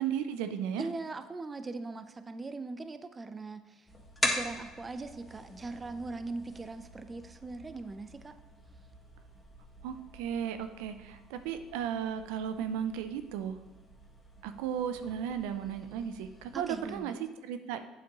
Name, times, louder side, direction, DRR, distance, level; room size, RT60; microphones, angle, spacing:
voice 1, 0.0-0.9 9.8-13.6 14.4-17.2 17.4-17.8, right 8 dB, 80° right, 10 dB, 0.5 m, -35 dB
voice 2, 0.8-3.9 4.2-8.4 16.5-17.2, right 3 dB, 25° right, 11 dB, 0.5 m, -40 dB
sound 1, 3.9-17.0, left 2 dB, 15° left, 1.6 m, -42 dB
8.5 x 7.1 x 3.0 m, 1.3 s
supercardioid pair, 90°, 0 cm